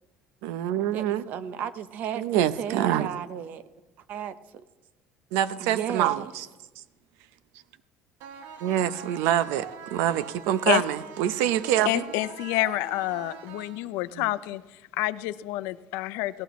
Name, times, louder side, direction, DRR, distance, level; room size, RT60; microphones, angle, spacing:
voice 1, 0.4-1.2 2.2-3.1 5.3-6.5 8.6-12.0 14.1-14.3, right 11 dB, 85° right, 15 dB, 0.7 m, -25 dB
voice 2, 0.9-3.6 4.1-4.6 5.6-6.3, right 9 dB, 45° right, 13 dB, 0.7 m, -34 dB
sound 1, 8.2-14.2, right 7 dB, 70° right, 1.0 m, -43 dB
voice 3, 11.8-14.6 15.0-16.4, left 17 dB, 85° left, 15 dB, 0.5 m, -28 dB
18.0 x 17.0 x 3.1 m, 1.2 s
cardioid pair, 170°, 4 cm